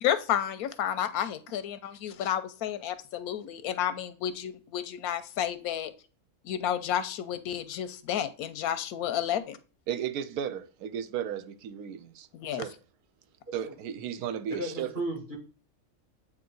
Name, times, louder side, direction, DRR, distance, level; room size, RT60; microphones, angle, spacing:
voice 1, 0.0-5.9 6.4-9.6 12.3-12.6, left 10 dB, 90° left, 1.1 m, -31 dB
voice 2, 9.9-12.7 13.5-14.9, right 9 dB, 80° right, 1.1 m, -35 dB
voice 3, 14.5-15.4, right 1 dB, 35° right, 2.4 m, -35 dB
8.4 x 2.9 x 3.9 m
omnidirectional pair, 1.5 m